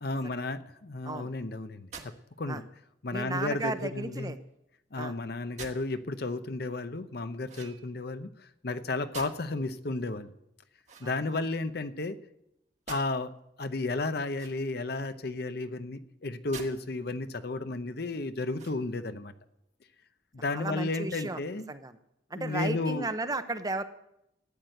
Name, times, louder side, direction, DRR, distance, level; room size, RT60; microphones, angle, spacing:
voice 1, 0.0-2.1 2.4-2.6 3.0-4.3 4.9-8.3 8.6-10.3 11.0-12.2 12.9-13.3 13.6-19.3 20.3-21.6 22.3-23.1, left 2 dB, 55° left, 11 dB, 0.7 m, -33 dB
sound 1, 1.9-2.2 3.6-4.0 5.6-5.9 7.5-8.1 9.1-9.6 10.8-11.7 12.9-13.1 14.3-14.9 16.5-16.7 17.3-17.4 18.5-19.0, right 5 dB, 35° right, 1.4 m, -46 dB
voice 2, 3.1-4.4 5.0-5.1 11.0-11.1 20.5-21.4 21.7-22.0 22.3-23.8, right 2 dB, 20° right, 10 dB, 0.7 m, -34 dB
13.5 x 9.6 x 7.8 m, 0.82 s
head